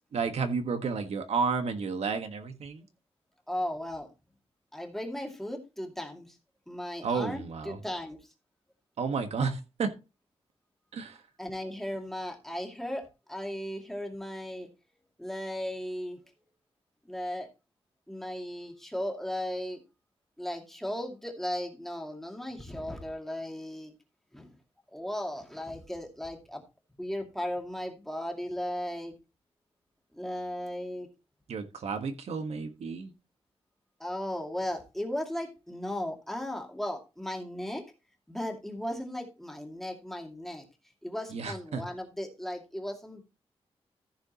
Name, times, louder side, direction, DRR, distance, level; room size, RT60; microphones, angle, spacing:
voice 1, 0.1-2.8 7.0-7.8 9.0-9.9 10.9-11.2 31.5-33.1 41.3-41.8, right 5 dB, 80° right, 1.5 m, -31 dB
voice 2, 3.5-4.1 4.7-6.4 6.7-8.2 11.4-14.7 15.2-16.2 17.1-17.5 18.1-19.8 20.4-23.9 24.3-24.5 24.9-26.6 27.0-29.2 30.1-31.1 34.0-37.8 38.3-40.6 41.0-43.2, left 1 dB, 5° left, 2.4 m, -36 dB
14.5 x 6.6 x 3.0 m
wide cardioid pair, 140°, 11 cm